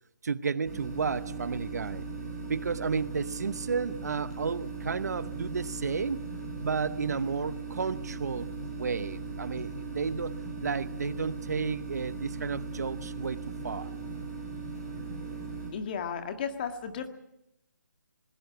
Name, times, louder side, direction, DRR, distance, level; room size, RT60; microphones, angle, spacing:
voice 1, 0.2-2.0 2.5-6.2 6.6-10.3 10.6-13.4 13.6-13.9, right 5 dB, 60° right, 0.8 m, -32 dB
sound 1, 0.6-15.7, right 4 dB, 5° left, 7.4 m, -38 dB
voice 2, 15.7-17.1, left 7 dB, 30° left, 1.8 m, -34 dB
20.0 x 20.0 x 7.7 m
hypercardioid pair, 160°, 10 cm